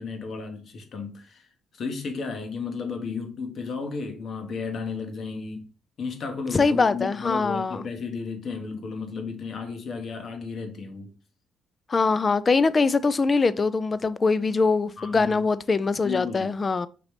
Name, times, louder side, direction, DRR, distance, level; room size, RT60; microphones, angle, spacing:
voice 1, 0.0-5.6 6.0-11.1 15.0-15.5 16.0-16.5, left 4 dB, 60° left, 1.0 m, -33 dB
voice 2, 6.5-7.8 11.9-16.9, left 4 dB, 35° left, 0.3 m, -23 dB
5.1 x 3.0 x 3.2 m
cardioid pair, 90°, 0 cm